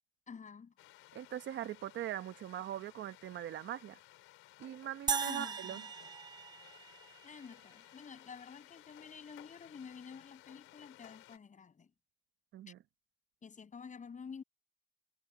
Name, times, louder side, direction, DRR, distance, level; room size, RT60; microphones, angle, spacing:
voice 1, 0.3-0.7 5.2-5.9 7.2-11.9 12.7-12.8 13.4-14.4, left 6 dB, 35° left, 7.0 m, -50 dB
sound 1, 0.8-11.4, left 17 dB, 85° left, 4.0 m, -59 dB
voice 2, 1.1-4.0 4.6-5.8 12.5-12.8, right 12 dB, 60° right, 1.0 m, -41 dB
sound 2, 5.1-7.5, right 6 dB, 20° right, 0.3 m, -38 dB
cardioid pair, 90°, 21 cm